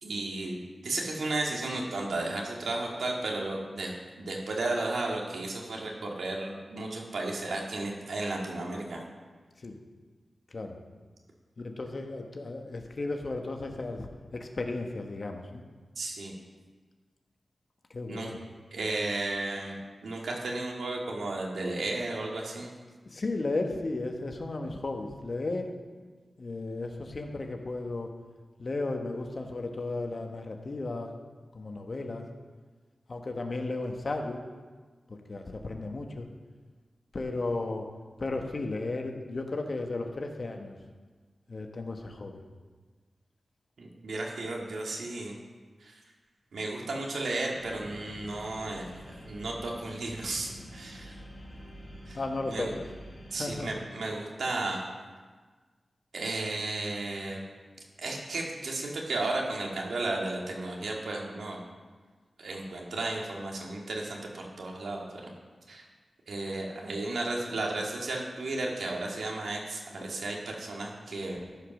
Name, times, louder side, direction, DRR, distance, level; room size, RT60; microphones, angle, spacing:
voice 1, 0.0-3.9 4.2-9.0 16.0-16.3 18.1-18.3 18.7-22.7 43.8-45.3 45.8-45.9 46.5-51.2 52.1-52.2 52.5-52.7 53.3-54.8 56.1-57.4 58.0-61.6 62.4-65.3 65.7-65.9 66.3-71.4, right 2 dB, 85° right, -1 dB, 1.9 m, -34 dB
voice 2, 11.6-15.6 17.9-18.4 23.1-25.7 26.4-28.1 28.6-31.1 31.5-32.2 33.1-34.4 35.1-36.3 37.1-37.9 38.2-40.8 41.5-42.4 52.1-52.9 53.3-53.7 70.0-70.1, left 2 dB, 55° left, 3 dB, 1.3 m, -34 dB
sound 1, 47.6-53.7, equal, 25° left, 3.6 m, -47 dB
14.0 x 5.2 x 6.0 m, 1.4 s
cardioid pair, 65°, 0 cm